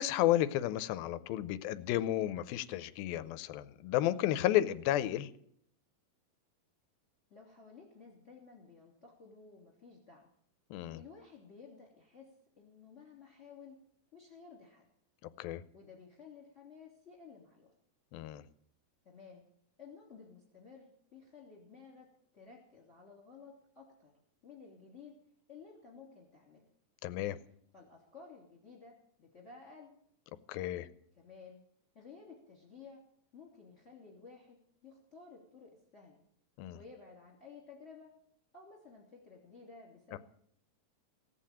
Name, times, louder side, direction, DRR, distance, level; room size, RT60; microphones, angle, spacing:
voice 1, 0.0-5.3 10.7-11.0 15.4-15.6 18.1-18.4 27.0-27.4 30.5-30.9 36.6-36.8 40.1-40.2, left 13 dB, 85° left, 14 dB, 2.5 m, -32 dB
voice 2, 7.3-10.3 10.9-12.3 12.6-13.8 14.1-14.9 15.7-17.7 19.0-19.4 19.8-22.1 22.3-24.1 24.4-25.2 25.5-26.6 27.7-29.9 31.2-31.6 31.9-33.0 33.3-34.6 34.8-36.2 36.7-38.1 38.5-40.2, left 5 dB, 20° left, 0 dB, 3.0 m, -54 dB
17.0 x 8.5 x 8.8 m, 0.68 s
omnidirectional pair, 4.2 m